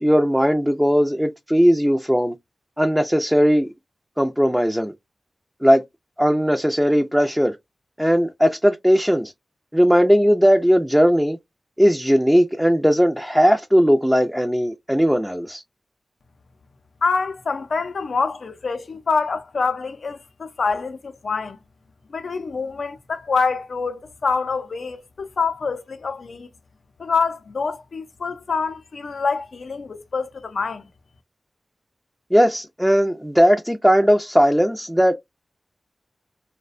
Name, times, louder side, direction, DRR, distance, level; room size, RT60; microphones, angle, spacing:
voice 1, 0.0-2.3 2.8-3.7 4.2-4.9 5.6-5.8 6.2-7.5 8.0-9.3 9.7-11.4 11.8-15.6 32.3-35.1, equal, 5° right, 0.4 m, -18 dB
voice 2, 17.0-21.6 22.1-26.5 27.0-30.8, left 4 dB, 80° left, 0.4 m, -26 dB
2.6 x 2.1 x 2.4 m
cardioid pair, 55°, 0 cm